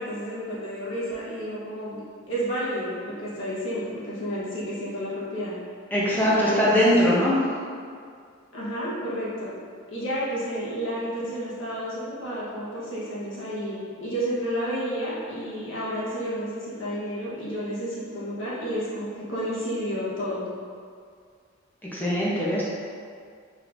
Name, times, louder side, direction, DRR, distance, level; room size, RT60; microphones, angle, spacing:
voice 1, 0.0-2.0 2.3-5.6 6.2-7.0 8.5-9.5 9.9-20.5, equal, 65° left, -8 dB, 1.1 m, -31 dB
voice 2, 5.9-7.4 21.9-22.7, equal, 10° left, -7 dB, 0.7 m, -21 dB
4.8 x 3.1 x 2.6 m, 2.2 s
head